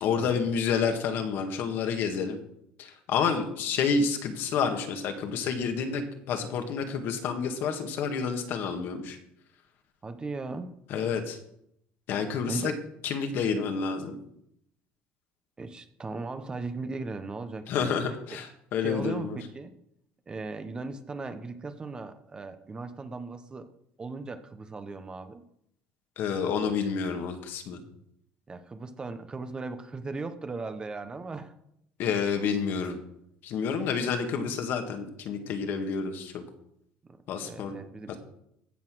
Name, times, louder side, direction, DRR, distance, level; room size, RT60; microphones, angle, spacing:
voice 1, 0.0-2.4 2.8-9.2 10.9-11.4 12.1-12.7 13.0-14.2 17.7-19.4 26.2-27.8 32.0-33.0 33.4-36.4 37.3-37.8 38.1-38.2, left 6 dB, 60° left, 5 dB, 1.9 m, -29 dB
voice 2, 10.0-10.7 12.5-12.8 15.6-18.0 18.3-18.4 18.8-19.7 20.3-23.7 24.0-25.4 28.5-31.5 37.1-38.1, right 3 dB, 20° right, 9 dB, 1.0 m, -38 dB
15.0 x 5.7 x 6.3 m, 0.75 s
cardioid pair, 125°, 4 cm